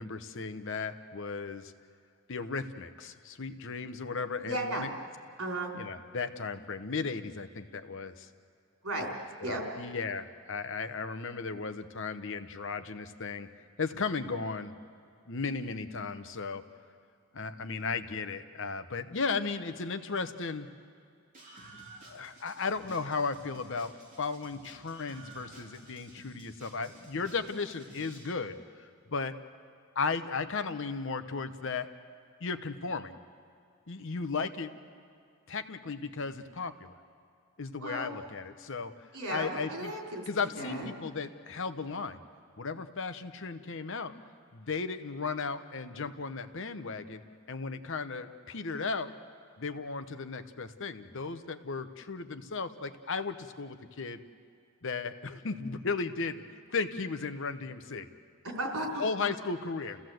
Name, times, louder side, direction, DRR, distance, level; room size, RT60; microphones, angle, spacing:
voice 1, 0.0-1.7 2.3-4.9 5.7-8.3 9.4-13.5 13.8-14.7 15.3-16.6 17.3-20.7 22.1-23.9 24.2-29.4 29.9-31.9 32.4-33.2 33.9-34.8 35.5-36.9 37.6-38.9 39.3-39.9 40.3-42.2 42.6-44.1 44.5-47.2 47.5-49.1 49.6-54.2 54.8-56.4 56.7-58.1 59.0-60.0, left 4 dB, 60° left, 10 dB, 1.0 m, -35 dB
voice 2, 4.4-4.8 5.4-5.7 8.8-9.1 9.4-9.6 37.8-38.1 39.1-40.2 40.6-40.9 58.4-59.0, right 1 dB, 85° right, 0 dB, 3.8 m, -34 dB
Screaming, 21.3-28.3, right 2 dB, 35° right, 3.4 m, -53 dB
29.5 x 15.5 x 7.8 m, 2.3 s
head